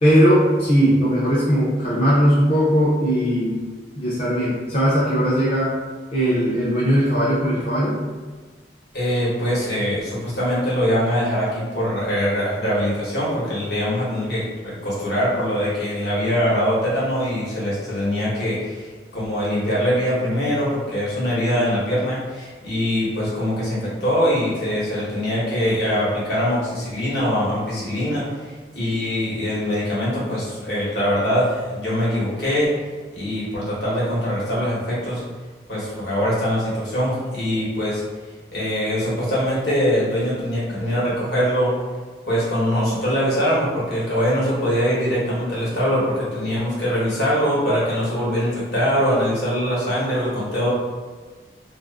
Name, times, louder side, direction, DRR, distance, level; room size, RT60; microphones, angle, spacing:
voice 1, 0.0-3.6 4.0-5.7 6.1-8.0, equal, 35° left, -9 dB, 0.5 m, -19 dB
voice 2, 8.9-32.7 33.1-35.2 35.7-38.0 38.5-41.7 42.3-50.7, equal, 65° left, -7 dB, 1.1 m, -23 dB
2.4 x 2.4 x 2.3 m, 1.4 s
head